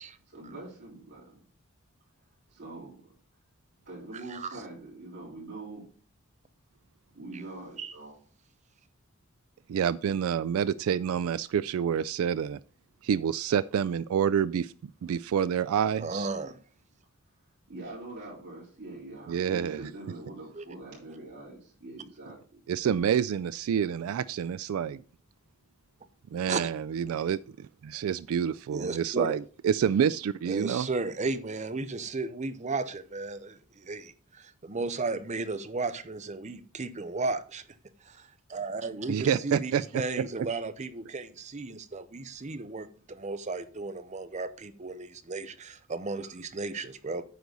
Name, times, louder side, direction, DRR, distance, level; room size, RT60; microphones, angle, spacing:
voice 1, 0.3-1.5 2.5-3.1 3.8-5.9 7.1-8.2 15.1-15.2 17.7-22.6, right 2 dB, 55° right, 4.5 m, -44 dB
voice 2, 9.7-12.6 13.0-16.3 19.3-19.8 22.7-25.0 26.3-30.9 39.1-40.3, right 8 dB, 70° right, 0.3 m, -28 dB
voice 3, 16.0-16.6 20.6-20.7 26.5-26.6 28.7-29.4 30.5-37.6 38.0-47.2, right 3 dB, 30° right, 0.7 m, -34 dB
9.4 x 4.0 x 6.7 m
head